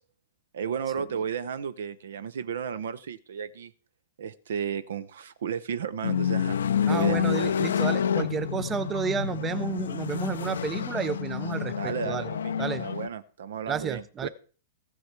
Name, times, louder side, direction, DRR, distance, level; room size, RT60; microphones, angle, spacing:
voice 1, 0.5-3.7 4.2-6.6 6.9-7.4 11.7-14.3, right 7 dB, 70° right, 18 dB, 0.6 m, -33 dB
sound 1, 6.0-13.1, left 8 dB, 75° left, 0.4 m, -28 dB
voice 2, 6.9-12.3 12.6-12.9 13.7-14.3, right 6 dB, 20° right, 16 dB, 0.5 m, -31 dB
15.0 x 6.4 x 4.4 m, 0.41 s
hypercardioid pair, 110°, 0 cm